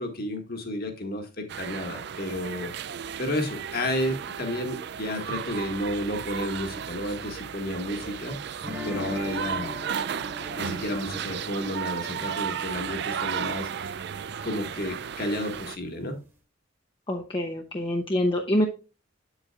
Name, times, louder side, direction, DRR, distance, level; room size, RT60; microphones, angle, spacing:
voice 1, 0.0-2.7 3.2-8.4 8.8-9.7 10.6-13.7 14.4-16.2, left 1 dB, 55° left, 5 dB, 1.7 m, -31 dB
sound 1, 1.5-15.8, right 8 dB, 60° right, 0.4 m, -34 dB
sound 2, 8.6-13.5, left 4 dB, 15° right, 1.5 m, -40 dB
voice 2, 17.1-18.7, left 1 dB, 25° left, 2 dB, 0.8 m, -25 dB
8.0 x 7.9 x 2.4 m, 0.32 s
head